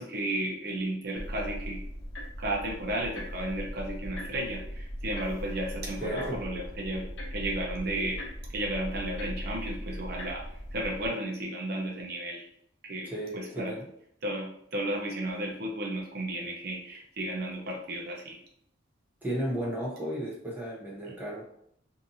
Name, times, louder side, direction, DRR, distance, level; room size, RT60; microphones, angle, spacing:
voice 1, 0.0-1.8 2.4-7.0 7.3-8.2 8.5-10.4 10.7-12.5 12.8-13.7 14.2-18.4, right 1 dB, 55° right, -1 dB, 0.6 m, -33 dB
sound 1, 1.2-11.1, equal, 65° left, 0.7 m, -39 dB
voice 2, 6.0-6.4 13.0-13.8 19.2-21.4, right 1 dB, 10° right, -5 dB, 0.7 m, -34 dB
2.7 x 2.5 x 2.5 m, 0.69 s
head